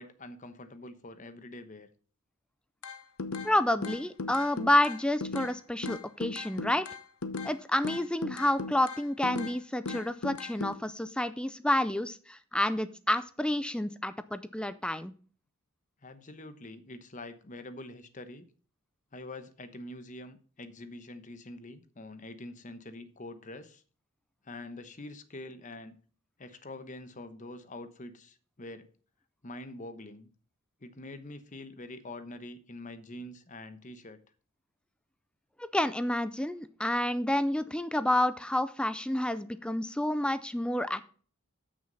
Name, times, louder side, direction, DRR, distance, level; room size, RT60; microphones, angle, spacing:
voice 1, 0.0-1.9 16.0-18.5 19.1-23.8 24.4-26.0 26.4-28.9 29.4-30.3 30.8-34.2, left 2 dB, 35° left, 10 dB, 1.0 m, -45 dB
sound 1, 2.8-3.5 3.8-5.5 5.8-7.5 7.8-9.5 9.8-10.7, left 3 dB, 85° left, 0.9 m, -37 dB
voice 2, 3.4-6.9 7.4-15.1 35.7-41.0, left 1 dB, 5° left, 13 dB, 0.4 m, -29 dB
13.0 x 6.4 x 4.0 m, 0.42 s
head